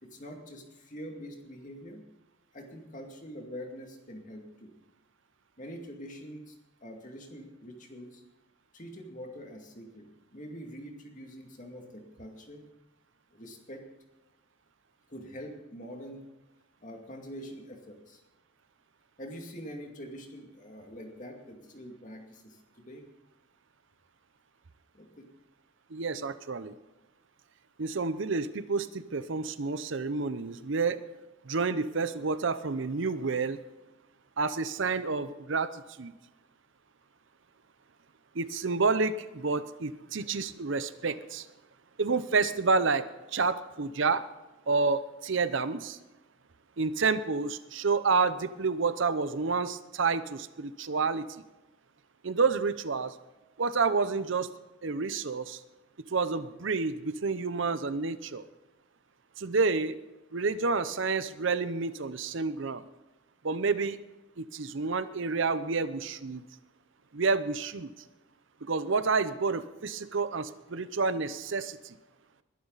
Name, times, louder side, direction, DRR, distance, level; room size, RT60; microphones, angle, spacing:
voice 1, 0.0-2.0 2.5-4.7 5.6-6.6 6.8-8.2 8.7-12.7 13.3-13.8 15.1-16.2 16.8-18.2 19.2-23.0 24.9-25.3 34.9-35.1, equal, 35° left, 3 dB, 2.3 m, -45 dB
voice 2, 25.9-26.7 27.8-31.0 31.4-33.6 34.4-36.1 38.3-41.5 42.0-44.2 44.7-46.0 46.8-51.3 52.2-53.1 53.6-54.5 54.8-55.6 56.1-58.4 59.4-60.0 60.3-62.8 63.4-64.0 64.4-66.4 67.1-67.9 68.6-71.9, right 4 dB, 60° right, 14 dB, 0.7 m, -29 dB
21.5 x 11.5 x 4.0 m, 1.1 s
head